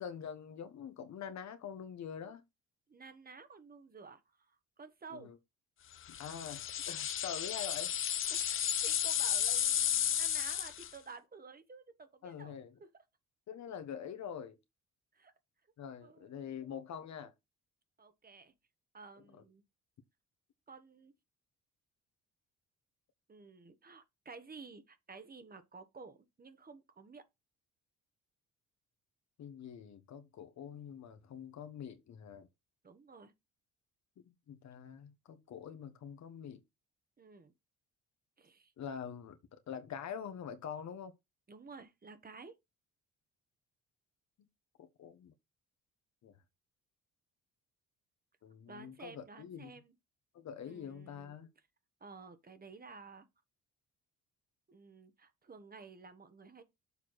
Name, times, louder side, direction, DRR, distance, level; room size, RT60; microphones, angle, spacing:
voice 1, 0.0-2.4 5.1-5.4 6.1-7.9 12.2-12.7 13.5-14.6 15.8-17.3 19.3-19.4 29.4-32.5 34.2-36.6 38.8-41.1 44.8-45.3 46.2-46.3 48.4-49.7 50.3-51.5, left 7 dB, 65° left, 1.2 m, -45 dB
voice 2, 2.9-5.3 8.3-13.0 15.1-15.3 16.0-16.4 18.0-18.5 18.9-19.6 20.7-21.1 23.3-27.2 32.8-33.3 37.2-37.5 38.4-38.7 41.5-42.6 48.7-49.9 50.6-51.4 52.0-53.3 54.7-56.6, right 4 dB, 30° right, 1.2 m, -52 dB
sound 1, 6.1-11.0, left 10 dB, 45° left, 0.5 m, -33 dB
7.0 x 4.4 x 4.7 m
cardioid pair, 90°, 30 cm